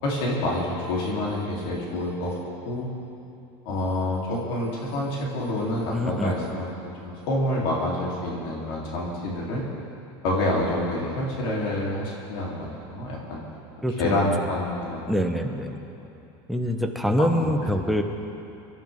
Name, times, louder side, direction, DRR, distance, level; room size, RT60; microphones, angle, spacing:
voice 1, 0.0-2.4 2.6-2.9 3.6-6.7 7.0-9.6 10.2-13.4 14.0-15.0 17.4-17.7, left 1 dB, 70° left, -4 dB, 3.2 m, -27 dB
voice 2, 5.9-6.4 13.8-14.2 15.1-15.9 16.5-18.0, equal, ahead, 3 dB, 1.0 m, -25 dB
23.5 x 13.0 x 3.6 m, 2.7 s
supercardioid pair, 140°, 13 cm